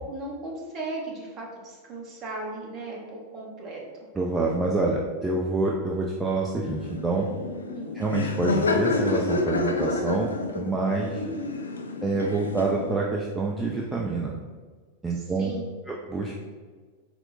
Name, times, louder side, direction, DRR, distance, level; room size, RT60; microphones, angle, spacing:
voice 1, 0.0-3.8 7.7-7.9 11.2-11.6 15.1-15.7, right 2 dB, 30° right, -3 dB, 1.0 m, -36 dB
voice 2, 4.2-7.3 7.9-11.2 12.0-14.3 15.0-15.5 15.9-16.3, right 3 dB, 10° right, -2 dB, 0.4 m, -27 dB
Laughter, 6.6-12.9, left 3 dB, 75° left, 0.4 m, -29 dB
4.3 x 2.1 x 3.9 m, 1.5 s
figure-of-eight pair, 90°, 0 cm